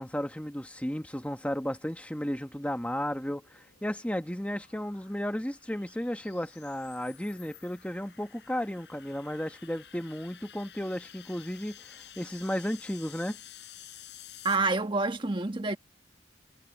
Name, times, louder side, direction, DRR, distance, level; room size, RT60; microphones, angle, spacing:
voice 1, 0.0-13.4, equal, 10° left, 1.3 m, -34 dB
sound 1, 3.4-14.6, left 11 dB, 70° left, 5.6 m, -52 dB
voice 2, 14.4-15.8, right 3 dB, 30° right, 1.4 m, -27 dB
head